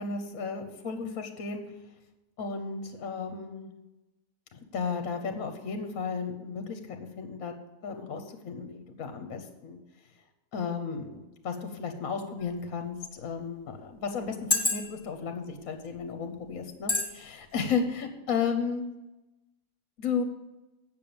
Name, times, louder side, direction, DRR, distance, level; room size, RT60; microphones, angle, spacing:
voice 1, 0.0-1.6 2.4-3.7 4.5-7.5 7.8-9.8 10.5-18.8 20.0-20.2, left 5 dB, 60° left, 6 dB, 1.3 m, -34 dB
sound 1, 12.4-12.5 13.3-13.4 14.3-15.1 15.8-16.0 16.9-17.1 17.5-17.7, left 4 dB, 25° left, 1.1 m, -27 dB
8.8 x 6.7 x 6.9 m, 1.0 s
omnidirectional pair, 1.7 m